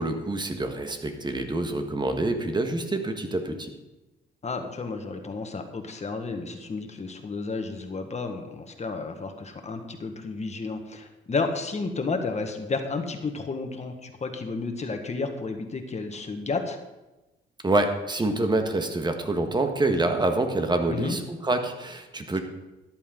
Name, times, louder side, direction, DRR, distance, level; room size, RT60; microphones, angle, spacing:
voice 1, 0.0-3.7 17.6-22.4, right 2 dB, 20° right, 6 dB, 1.7 m, -26 dB
voice 2, 4.4-16.8 20.9-21.2, left 4 dB, 35° left, 5 dB, 1.8 m, -32 dB
14.0 x 11.0 x 4.0 m, 1.0 s
cardioid pair, 90°, 20 cm